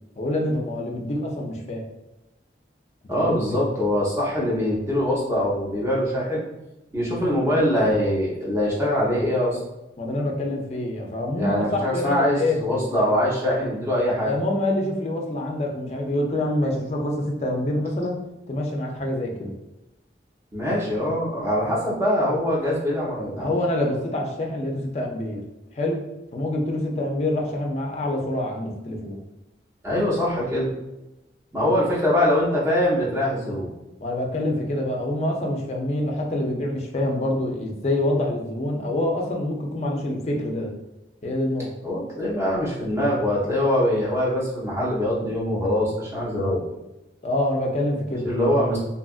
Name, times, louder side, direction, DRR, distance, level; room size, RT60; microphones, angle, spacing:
voice 1, 0.2-1.8 3.1-3.7 10.0-12.6 14.2-18.2 18.5-19.5 23.4-25.4 25.7-26.0 26.3-29.2 34.0-40.7 41.2-41.7 47.2-48.3, left 1 dB, 35° left, 0 dB, 0.4 m, -26 dB
voice 2, 3.1-6.4 6.9-9.6 11.4-14.3 20.5-23.5 29.8-30.7 31.5-33.7 41.8-46.6 48.2-48.8, left 1 dB, 15° right, -6 dB, 0.7 m, -23 dB
2.7 x 2.4 x 2.3 m, 0.97 s
head